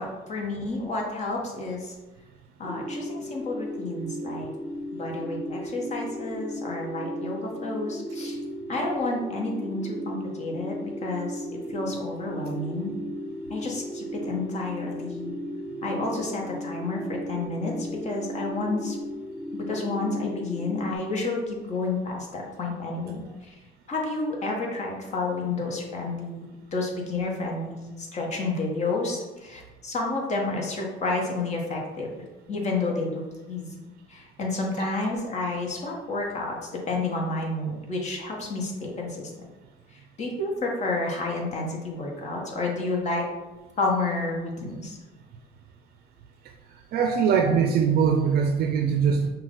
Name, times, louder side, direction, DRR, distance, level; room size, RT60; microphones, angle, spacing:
voice 1, 0.0-2.0 2.6-4.5 4.9-8.4 8.7-12.9 13.5-15.4 15.8-19.0 19.5-23.6 23.9-32.1 32.5-33.2 33.5-39.3 39.9-43.3 43.8-45.0, left 3 dB, 40° left, -1 dB, 1.2 m, -30 dB
sound 1, 2.6-21.0, equal, 10° left, 0.6 m, -35 dB
voice 2, 46.9-49.3, right 6 dB, 65° right, 4 dB, 0.5 m, -22 dB
5.9 x 2.3 x 3.7 m, 1.1 s
cardioid pair, 110°, 17 cm